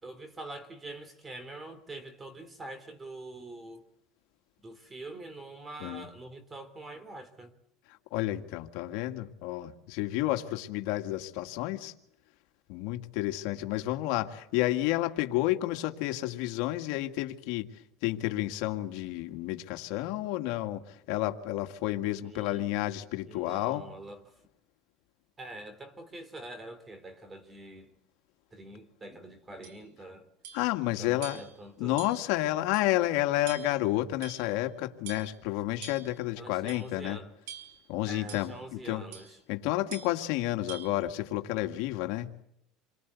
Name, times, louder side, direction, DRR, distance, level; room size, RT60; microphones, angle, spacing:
voice 1, 0.0-3.9 4.6-7.5 22.2-22.7 23.3-24.4 25.4-27.9 28.5-30.3 31.0-32.0 36.4-37.3 38.1-39.4, right 2 dB, 20° right, 2.8 m, -45 dB
voice 2, 8.1-11.9 12.7-17.7 18.0-23.8 30.5-31.4 31.8-37.2 37.9-39.0 39.5-42.3, left 16 dB, 70° left, 1.9 m, -30 dB
sound 1, 29.6-29.8 30.4-30.7 31.2-31.6 32.0-32.3 32.7-32.9 33.5-33.8 34.2-34.6 35.1-35.4 35.8-36.2 36.7-36.9 37.5-37.9 38.3-38.5 39.1-39.4 39.9-40.2 40.7-40.9, right 8 dB, 85° right, 5.0 m, -45 dB
28.5 x 23.0 x 8.3 m
cardioid pair, 135°, 0 cm